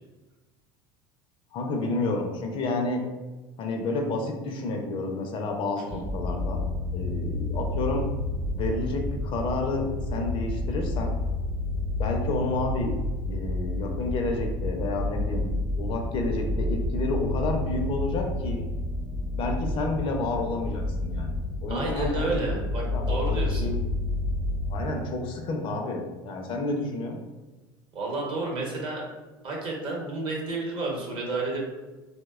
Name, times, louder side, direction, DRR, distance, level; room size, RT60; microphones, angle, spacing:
voice 1, 1.5-3.0 3.6-6.6 6.9-8.0 8.5-11.1 12.0-13.0 13.3-15.5 15.8-18.6 19.4-22.6 22.9-23.8 24.7-27.2, left 2 dB, 50° left, 2 dB, 0.4 m, -30 dB
sound 1, 5.9-24.8, left 2 dB, 15° right, 0.5 m, -30 dB
voice 2, 21.7-23.7 27.9-29.0 29.4-31.6, right 2 dB, 45° right, -2 dB, 0.8 m, -31 dB
2.7 x 2.1 x 2.3 m, 1.2 s
supercardioid pair, 100°, 12 cm